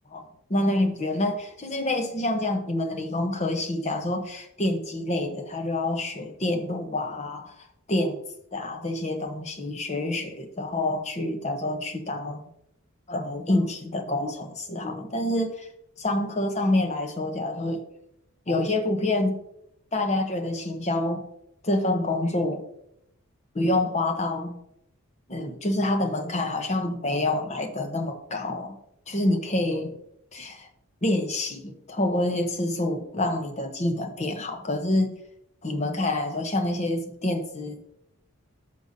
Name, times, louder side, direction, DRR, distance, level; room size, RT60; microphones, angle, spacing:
voice 1, 0.1-8.2 8.5-12.5 13.1-15.7 16.0-17.8 18.5-19.4 19.9-21.3 21.6-22.6 23.5-24.6 25.3-28.8 29.1-29.9 30.3-30.7 31.0-35.2 35.6-37.9, left 1 dB, 30° left, 7 dB, 0.8 m, -27 dB
11.5 x 6.8 x 2.7 m, 0.78 s
head